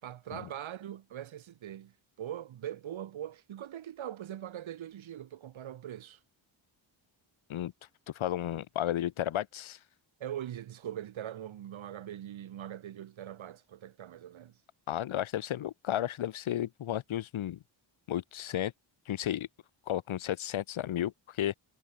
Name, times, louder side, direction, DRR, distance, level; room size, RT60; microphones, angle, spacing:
voice 1, 0.0-6.2 10.2-14.6, right 11 dB, 80° right, 6.2 m, -42 dB
voice 2, 8.1-9.8 14.9-17.6 18.1-18.7 19.1-19.5 19.9-21.5, left 12 dB, 85° left, 2.8 m, -33 dB
wide cardioid pair, 175°, 47 cm